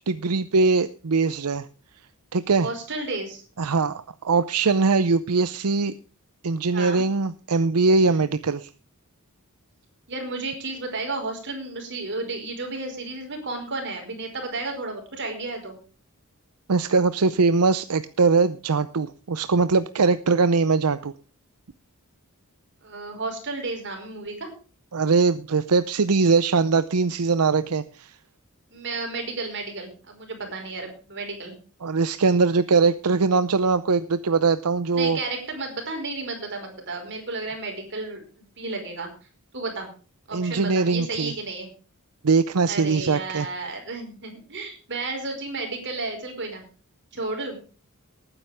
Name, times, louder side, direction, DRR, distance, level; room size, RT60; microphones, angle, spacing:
voice 1, 0.0-1.7 2.3-2.7 3.6-5.9 6.4-8.7 16.7-21.1 24.9-28.1 31.8-35.2 40.3-41.3 42.2-43.5, right 4 dB, 85° right, 14 dB, 0.7 m, -21 dB
voice 2, 2.6-3.4 6.7-7.1 8.0-8.3 10.1-15.7 22.8-24.5 28.7-31.6 34.9-38.2 38.6-39.1 39.5-39.9 40.3-41.7 42.7-46.6 47.1-47.6, right 3 dB, 55° right, 3 dB, 5.1 m, -32 dB
19.0 x 9.9 x 3.6 m, 0.37 s
head